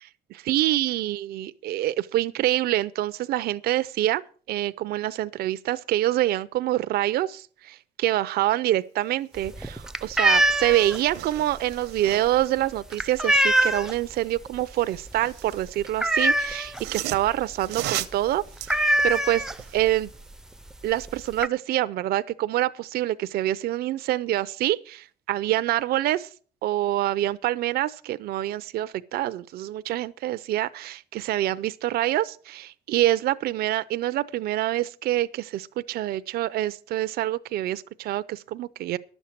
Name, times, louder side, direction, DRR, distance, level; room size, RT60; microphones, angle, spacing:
voice 1, 0.4-4.2 4.5-18.4 18.7-20.1 20.8-26.3 26.6-39.0, right 14 dB, 65° right, 0.5 m, -26 dB
sound 1, 9.4-14.1 14.5-14.8 15.1-15.2 15.5-16.9 17.3-17.4 17.6-17.8 18.1-18.2 18.6-19.9 20.7-20.8 21.0-21.5, right 1 dB, 5° right, 0.5 m, -23 dB
sound 2, 9.9-10.0 10.2-12.5 14.6-15.7 16.5-19.8 20.3-20.4, right 15 dB, 90° right, 0.9 m, -37 dB
11.0 x 7.2 x 7.4 m
cardioid pair, 110°, 17 cm